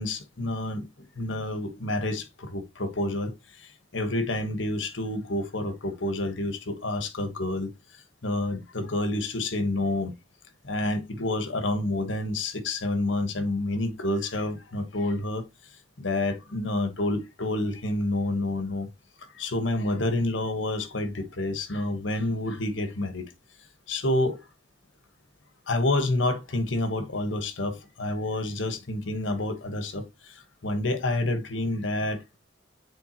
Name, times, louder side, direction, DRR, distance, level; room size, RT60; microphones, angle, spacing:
voice 1, 0.0-7.7 8.2-10.1 10.6-15.4 16.0-18.9 19.3-23.2 23.9-24.4 25.7-32.2, left 2 dB, 70° left, 1.3 m, -29 dB
7.0 x 4.6 x 3.0 m
head